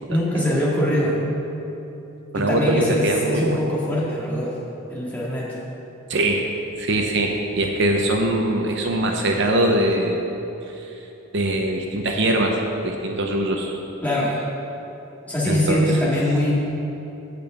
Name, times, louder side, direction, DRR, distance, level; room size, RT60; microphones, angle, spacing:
voice 1, 0.1-1.2 2.3-4.6 4.9-5.6 14.0-14.4 15.2-16.5, equal, 10° left, -7 dB, 2.0 m, -22 dB
voice 2, 2.3-3.6 6.1-6.4 6.8-10.2 11.3-12.6 12.8-13.8 15.5-16.1, right 1 dB, 55° right, 2 dB, 0.8 m, -22 dB
9.3 x 5.2 x 7.6 m, 3.0 s
head